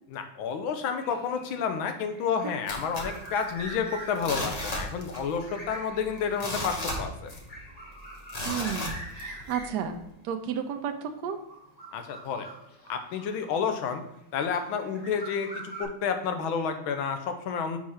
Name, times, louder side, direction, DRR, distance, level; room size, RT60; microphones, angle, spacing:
voice 1, 0.1-7.3 11.9-12.5 12.9-14.0 14.3-17.8, left 6 dB, 85° left, 7 dB, 1.5 m, -30 dB
sound 1, 1.0-13.9 14.6-15.8, right 1 dB, 20° left, 1.8 m, -44 dB
sound 2, 2.7-3.8 4.1-5.4 5.6-5.7 6.2-7.6 8.3-9.5 10.0-10.1, left 1 dB, 35° left, 0.6 m, -34 dB
voice 2, 8.4-11.4, right 7 dB, 75° right, 5 dB, 1.0 m, -33 dB
4.7 x 4.5 x 5.5 m, 0.84 s
omnidirectional pair, 2.2 m